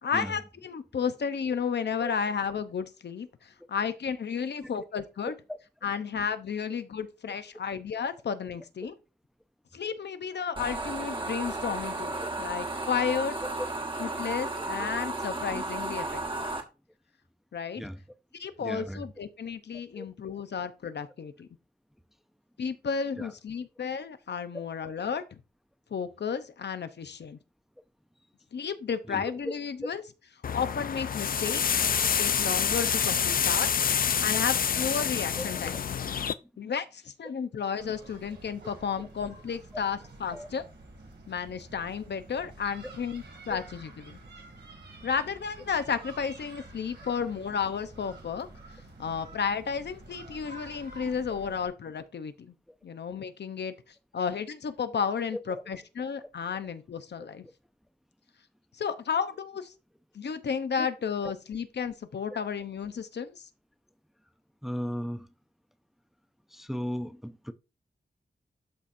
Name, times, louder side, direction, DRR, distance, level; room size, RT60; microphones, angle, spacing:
voice 1, 0.0-5.3 5.8-9.0 9.7-12.1 12.4-13.3 14.0-16.5 17.5-17.8 18.3-21.5 22.6-25.2 25.9-27.4 28.5-30.0 30.5-31.6 32.2-33.8 34.2-35.8 36.6-40.6 41.3-44.2 45.0-52.5 52.8-53.7 54.1-57.5 58.8-59.7 60.1-63.5, left 6 dB, 80° left, 0.8 m, -33 dB
sound 1, 10.6-16.6, right 2 dB, 30° right, 1.3 m, -34 dB
voice 2, 18.6-19.0 19.9-20.1 23.2-23.3 29.1-29.3 35.4-35.5 40.3-40.5 43.5-43.6 55.5-55.6 57.4-57.5 60.8-60.9 64.6-65.3 66.5-67.5, equal, ahead, 0.5 m, -36 dB
sound 2, 30.4-36.3, left 7 dB, 55° left, 0.4 m, -27 dB
sound 3, 37.8-51.7, right 2 dB, 90° right, 2.3 m, -49 dB
12.0 x 4.3 x 2.6 m
wide cardioid pair, 135°, 17 cm